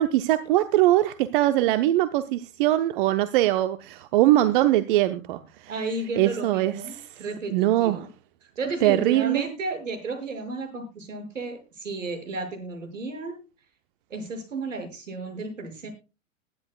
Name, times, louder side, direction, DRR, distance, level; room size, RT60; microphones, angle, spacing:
voice 1, 0.0-5.4 6.2-6.7 7.5-8.0 8.8-9.4, right 14 dB, 40° right, 0.8 m, -21 dB
voice 2, 5.7-8.1 8.6-13.4 14.1-15.9, right 3 dB, 70° right, 6.6 m, -33 dB
21.5 x 10.5 x 2.4 m
figure-of-eight pair, 100°, 40 cm